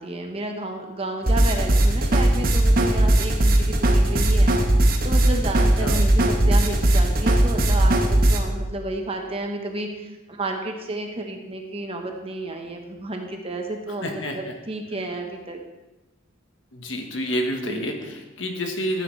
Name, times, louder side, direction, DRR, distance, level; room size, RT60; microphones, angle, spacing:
voice 1, 0.0-4.5 5.0-15.6 17.7-17.8, right 2 dB, 30° right, 3 dB, 1.2 m, -31 dB
sound 1, 1.2-8.4, right 1 dB, 50° right, 1.1 m, -18 dB
voice 2, 14.0-14.5 16.7-19.0, equal, 70° left, 3 dB, 1.5 m, -29 dB
13.5 x 9.1 x 3.3 m, 1.0 s
head